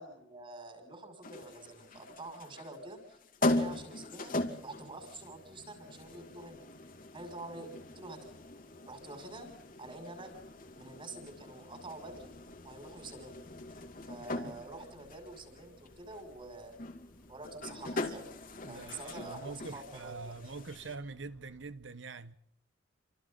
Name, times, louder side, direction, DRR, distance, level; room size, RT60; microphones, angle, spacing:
voice 1, 0.0-4.4 4.6-6.6 7.1-8.3 8.8-9.5 9.8-10.3 10.7-12.3 12.6-13.4 14.1-16.8 17.3-18.2 18.7-20.4, right 2 dB, 30° right, 6.1 m, -47 dB
sound 1, 1.2-21.0, left 2 dB, 50° left, 2.5 m, -40 dB
Engine, 12.1-21.7, equal, 15° left, 2.1 m, -63 dB
voice 2, 18.6-22.4, right 4 dB, 70° right, 1.1 m, -44 dB
29.0 x 26.0 x 3.9 m
head